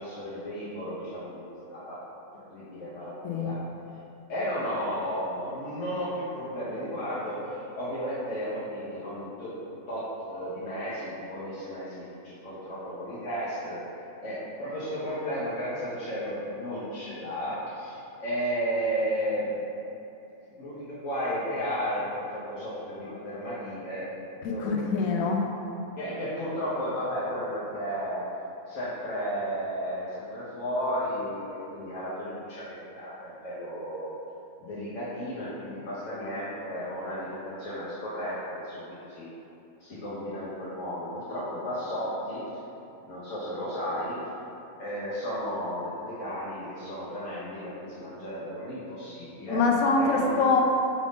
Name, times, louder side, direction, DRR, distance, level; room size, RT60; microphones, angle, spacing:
voice 1, 0.0-2.0 2.5-3.6 4.3-9.5 9.9-19.5 20.6-22.0 22.3-24.1 24.3-24.9 26.0-28.2 28.7-32.6 33.0-34.1 34.6-39.3 39.8-42.4 43.1-44.2 44.8-49.6 50.0-50.5, equal, 65° left, -10 dB, 1.2 m, -33 dB
voice 2, 24.4-25.5 49.5-50.6, left 4 dB, 80° left, 1 dB, 1.0 m, -24 dB
5.1 x 2.5 x 3.5 m, 2.9 s
omnidirectional pair, 1.4 m